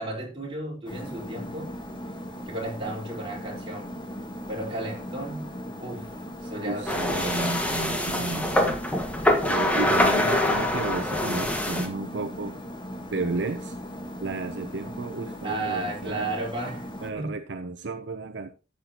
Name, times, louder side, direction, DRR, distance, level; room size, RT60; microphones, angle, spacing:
voice 1, 0.0-1.8 2.5-4.0 4.5-7.5 9.2-9.4 15.4-17.3, right 2 dB, 30° right, 4.4 m, -34 dB
sound 1, 0.9-17.1, equal, 25° left, 1.4 m, -38 dB
voice 2, 6.7-8.8 9.5-12.5 13.1-13.8 14.2-16.3 17.0-18.5, right 3 dB, 65° right, 0.7 m, -33 dB
sound 2, 6.9-11.9, left 1 dB, 10° left, 1.6 m, -24 dB
13.0 x 8.4 x 2.9 m
head